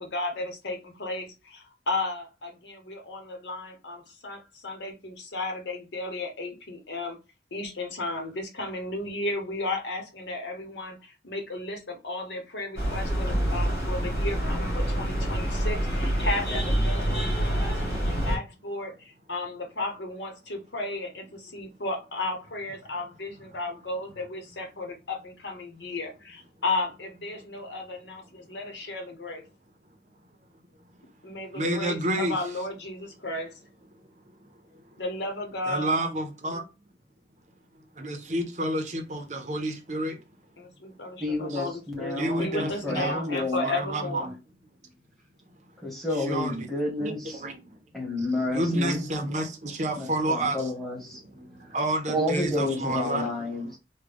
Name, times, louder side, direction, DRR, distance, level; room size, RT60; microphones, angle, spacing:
voice 1, 0.0-7.2 7.5-29.4 31.2-33.5 35.0-35.9 40.6-44.3, left 2 dB, 80° left, 1.0 m, -34 dB
sound 1, 12.8-18.4, right 1 dB, 55° left, 2.1 m, -26 dB
voice 2, 31.5-32.4 35.7-36.6 38.0-40.2 41.5-41.6 42.2-44.3 46.2-46.7 47.0-47.7 48.5-50.7 51.3-53.3, right 1 dB, 40° right, 0.6 m, -29 dB
voice 3, 41.2-43.7 45.8-47.4 47.9-49.1 50.0-51.2 52.1-53.8, left 2 dB, ahead, 1.1 m, -30 dB
3.6 x 2.2 x 3.4 m
head